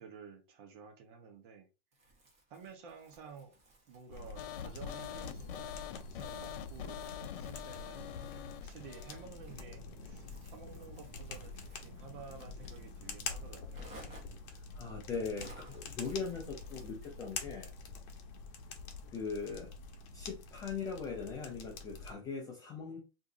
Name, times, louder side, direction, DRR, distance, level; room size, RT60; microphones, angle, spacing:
voice 1, 0.0-1.7 2.1-2.2 2.5-3.6 3.9-13.9, right 5 dB, 55° right, 1.1 m, -53 dB
Crumpling crinkling, 1.9-17.7, right 1 dB, 20° right, 1.1 m, -60 dB
sound 1, 4.1-22.1, left 4 dB, 35° left, 0.8 m, -46 dB
sound 2, 4.4-9.3, left 10 dB, 60° left, 0.5 m, -44 dB
voice 2, 14.8-17.7 19.1-19.7 20.1-23.0, left 5 dB, 10° left, 0.3 m, -40 dB
2.8 x 2.7 x 3.7 m
supercardioid pair, 150°, 31 cm